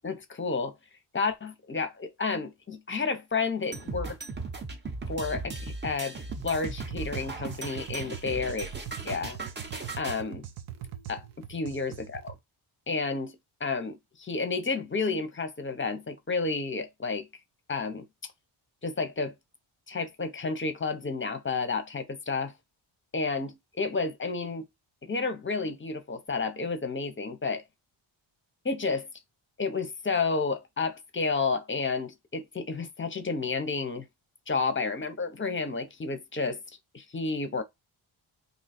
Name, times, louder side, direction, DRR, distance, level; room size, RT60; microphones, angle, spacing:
voice 1, 0.0-0.7 1.1-4.2 5.1-6.2 6.4-8.7 9.0-9.4 10.0-10.4 11.1-11.2 11.5-12.4 12.9-13.4 13.6-17.3 17.7-18.0 18.8-19.3 19.9-22.5 23.1-24.7 25.0-27.6 28.6-29.1 29.6-34.1 34.5-36.6 36.9-37.6, left 4 dB, 25° left, 0.6 m, -31 dB
sound 1, 3.7-10.2, right 3 dB, 20° right, 0.7 m, -37 dB
sound 2, 6.3-12.4, right 10 dB, 90° right, 0.7 m, -42 dB
2.7 x 2.3 x 4.1 m
cardioid pair, 100°, 49 cm